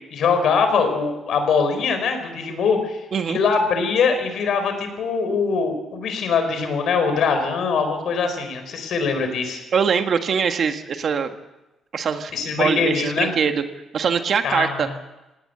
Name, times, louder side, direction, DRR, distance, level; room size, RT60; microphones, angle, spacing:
voice 1, 0.1-3.0 3.3-9.6 12.3-13.3 14.4-14.8, left 5 dB, 70° left, 7 dB, 4.6 m, -22 dB
voice 2, 9.7-11.3 11.9-13.6 13.9-14.9, right 6 dB, 55° right, 7 dB, 1.7 m, -22 dB
18.5 x 18.0 x 8.0 m, 1.0 s
cardioid pair, 90°, 0 cm